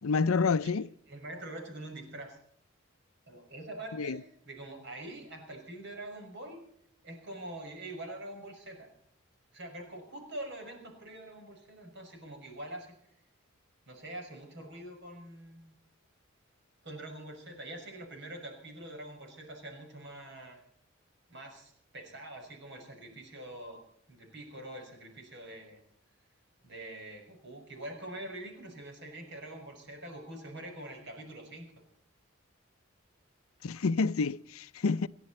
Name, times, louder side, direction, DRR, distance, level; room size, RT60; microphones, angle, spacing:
voice 1, 0.0-0.9 4.0-4.2 33.6-35.1, left 4 dB, 85° left, 0.5 m, -28 dB
voice 2, 1.1-2.4 3.3-6.6 7.0-8.9 9.5-12.9 13.9-15.7 16.8-20.6 21.3-23.8 24.1-25.8 26.6-31.7, right 1 dB, 55° right, 6.3 m, -44 dB
29.0 x 11.0 x 4.3 m
head